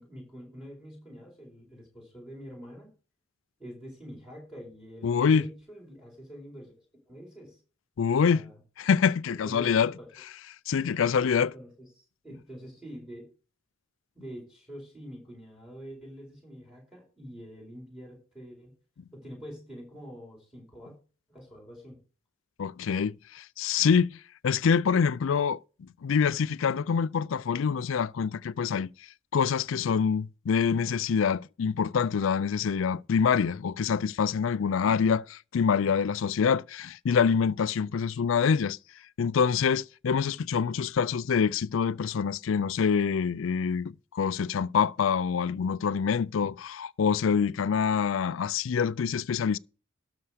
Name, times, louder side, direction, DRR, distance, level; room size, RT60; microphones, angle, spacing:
voice 1, 0.0-2.9 3.6-6.7 7.1-7.6 8.0-8.6 9.4-10.1 11.4-13.3 14.1-18.7 19.1-21.0 21.3-22.0, equal, 5° right, 4.4 m, -45 dB
voice 2, 5.0-5.5 8.0-8.5 8.8-9.9 10.7-11.5 22.6-25.6 26.0-28.9 29.3-38.8 39.2-49.6, left 6 dB, 75° left, 0.4 m, -26 dB
12.5 x 5.7 x 5.0 m
head